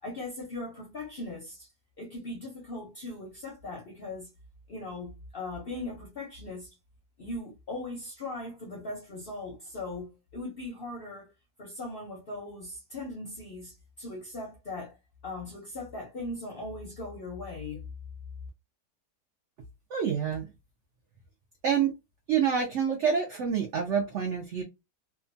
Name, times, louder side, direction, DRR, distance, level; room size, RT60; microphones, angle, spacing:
voice 1, 0.0-1.7 2.0-4.3 4.7-6.7 7.2-11.3 11.6-15.0 15.2-17.8, left 2 dB, 55° left, 0.6 m, -39 dB
voice 2, 19.9-20.5 21.6-21.9 22.3-24.6, right 7 dB, 75° right, 0.6 m, -27 dB
2.8 x 2.2 x 2.6 m
omnidirectional pair, 1.8 m